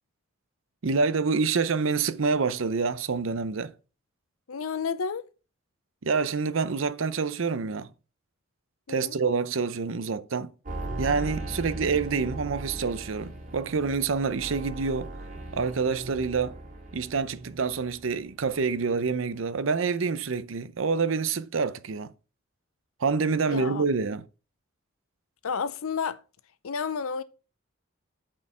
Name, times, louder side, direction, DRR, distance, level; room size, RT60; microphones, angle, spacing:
voice 1, 0.8-3.7 6.0-7.9 8.9-10.5 11.0-15.1 15.5-16.6 16.9-22.1 23.0-24.3, right 5 dB, 70° right, 0.6 m, -27 dB
voice 2, 4.5-5.2 8.9-9.2 23.4-23.8 25.4-26.2 26.6-27.2, left 6 dB, 90° left, 0.6 m, -31 dB
sound 1, 10.7-18.1 18.4-19.1 19.3-19.4, right 2 dB, 40° right, 2.1 m, -38 dB
8.6 x 4.5 x 6.0 m
head